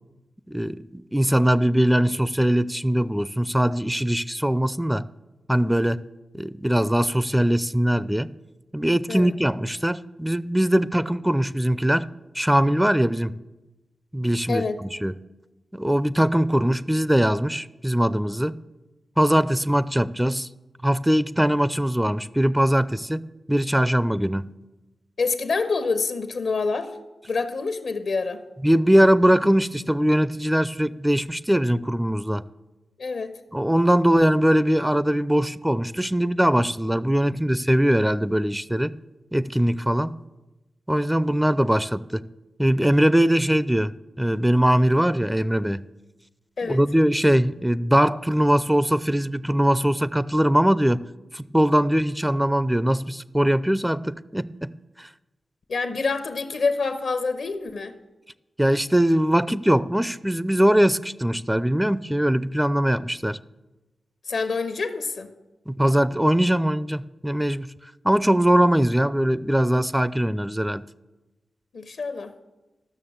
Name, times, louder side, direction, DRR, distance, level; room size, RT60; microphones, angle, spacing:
voice 1, 0.5-5.1 5.5-6.0 6.3-8.3 8.7-12.1 12.3-13.4 14.1-15.1 15.7-18.6 19.2-20.5 20.8-24.5 28.6-32.4 33.5-38.9 39.3-40.2 40.9-42.3 42.6-45.8 46.6-51.1 51.3-54.7 55.0-55.1 58.6-63.4 65.7-67.7 68.0-70.8, equal, 10° right, 0.4 m, -21 dB
voice 2, 25.2-26.9 27.3-28.4 33.0-33.3 46.6-46.8 55.7-57.9 64.3-65.3 71.7-72.3, left 4 dB, 75° left, 1.0 m, -26 dB
12.5 x 6.3 x 7.3 m
cardioid pair, 45°, 0 cm